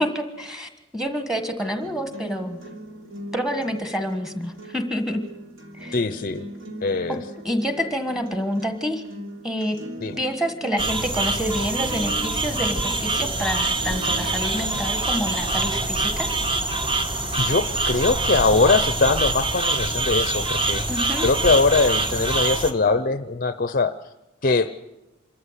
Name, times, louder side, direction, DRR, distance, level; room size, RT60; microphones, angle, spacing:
voice 1, 0.0-2.6 3.3-5.2 5.8-6.0 7.1-7.2 7.4-9.0 9.4-9.8 10.2-16.3 20.9-21.3, equal, 5° right, 7 dB, 1.5 m, -27 dB
sound 1, 1.8-17.8, right 1 dB, 70° right, 3.4 m, -40 dB
voice 2, 5.9-6.5 6.8-7.2 10.0-10.2 17.4-20.8 21.2-23.9 24.4-24.7, left 3 dB, 40° left, 12 dB, 0.6 m, -21 dB
sound 2, 10.8-22.7, right 2 dB, 25° right, 1.2 m, -25 dB
26.0 x 14.0 x 8.2 m, 0.99 s
head